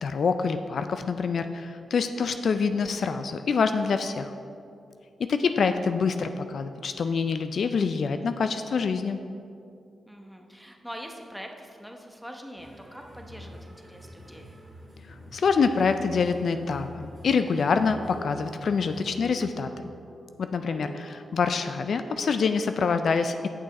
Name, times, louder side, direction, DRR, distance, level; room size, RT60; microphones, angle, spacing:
voice 1, 0.0-4.3 5.3-9.2 15.3-19.9 20.4-23.5, left 5 dB, 70° left, 9 dB, 0.3 m, -26 dB
voice 2, 2.2-2.6 10.1-14.5 20.7-21.0, equal, ahead, 3 dB, 0.9 m, -44 dB
sound 1, 12.6-19.5, equal, 25° right, 2.0 m, -47 dB
sound 2, 17.9-22.7, right 3 dB, 65° right, 1.3 m, -46 dB
8.0 x 6.2 x 4.1 m, 2.5 s
cardioid pair, 75°, 0 cm